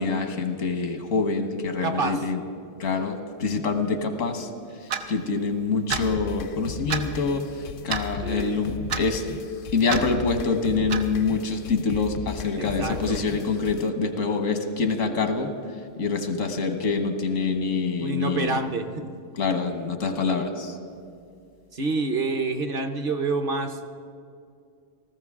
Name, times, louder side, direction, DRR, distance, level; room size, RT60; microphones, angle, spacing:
voice 1, 0.0-2.4 2.8-4.5 4.8-9.3 9.7-15.5 16.0-18.6 19.3-20.8, left 4 dB, 90° left, 7 dB, 1.5 m, -26 dB
voice 2, 1.8-2.2 8.2-8.6 12.6-13.2 18.0-19.1 21.7-23.8, right 3 dB, 50° right, 7 dB, 0.8 m, -28 dB
Clock, 4.9-5.0 5.9-6.1 6.9-7.1 7.9-8.1 8.9-9.0 9.9-10.0 10.9-11.1, right 7 dB, 90° right, 1.2 m, -28 dB
sound 1, 5.9-13.9, left 6 dB, 60° left, 0.6 m, -36 dB
18.5 x 14.5 x 3.6 m, 2.4 s
omnidirectional pair, 1.3 m